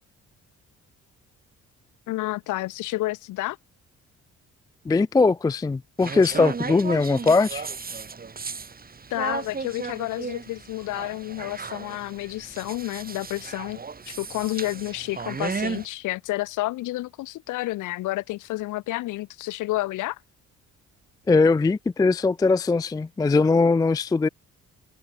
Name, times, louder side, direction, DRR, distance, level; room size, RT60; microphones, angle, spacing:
voice 1, 2.1-3.6 9.1-13.8 14.1-20.2, left 17 dB, 90° left, 0.9 m, -30 dB
voice 2, 4.9-7.7 21.3-24.3, left 3 dB, 15° left, 0.4 m, -20 dB
sound 1, 6.0-15.9, right 5 dB, 30° right, 2.2 m, -35 dB
cardioid pair, 90°, 30 cm